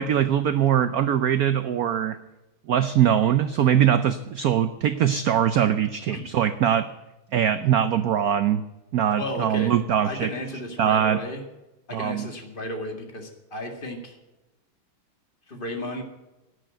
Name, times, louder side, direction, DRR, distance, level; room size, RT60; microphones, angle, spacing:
voice 1, 0.0-2.2 2.7-6.9 7.3-8.6 8.9-10.3 10.8-11.2 11.9-12.3, right 9 dB, 85° right, 11 dB, 0.8 m, -22 dB
voice 2, 9.2-9.7 10.0-11.4 11.9-14.2 15.5-16.0, left 1 dB, 25° left, 4 dB, 2.1 m, -33 dB
11.5 x 9.5 x 8.9 m, 1.0 s
omnidirectional pair, 2.3 m